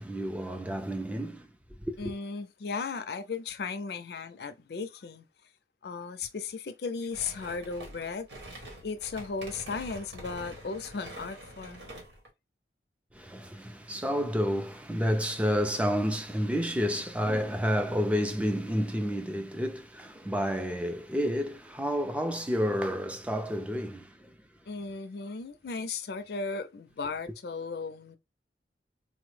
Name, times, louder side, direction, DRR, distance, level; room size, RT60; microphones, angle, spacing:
voice 1, 0.0-1.5 1.8-2.1 13.1-24.3, equal, 5° right, 0.4 m, -30 dB
voice 2, 2.0-5.3 5.8-11.9 24.7-28.2, left 4 dB, 60° left, 0.4 m, -36 dB
sound 1, 7.1-12.3, right 1 dB, 90° right, 1.3 m, -46 dB
3.9 x 2.0 x 3.1 m
head